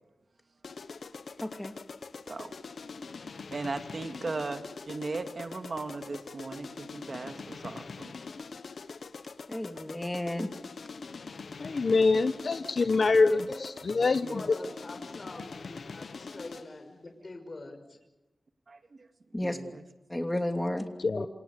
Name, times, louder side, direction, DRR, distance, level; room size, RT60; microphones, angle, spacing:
sound 1, 0.6-16.8, left 4 dB, 90° left, 1.3 m, -43 dB
voice 1, 1.4-1.7 9.5-10.5 19.3-19.6 20.1-20.8, left 1 dB, 15° left, 6 dB, 2.9 m, -32 dB
voice 2, 3.5-8.1 14.2-14.5 18.7-19.1 19.4-19.8, right 3 dB, 55° right, 7 dB, 2.2 m, -37 dB
voice 3, 11.6-14.4 21.0-21.3, left 3 dB, 65° left, 10 dB, 1.0 m, -25 dB
voice 4, 13.3-13.6 14.3-17.8 21.1-21.3, left 2 dB, 40° left, 5 dB, 5.9 m, -43 dB
28.0 x 26.0 x 6.7 m, 1.0 s
wide cardioid pair, 105°, 0 cm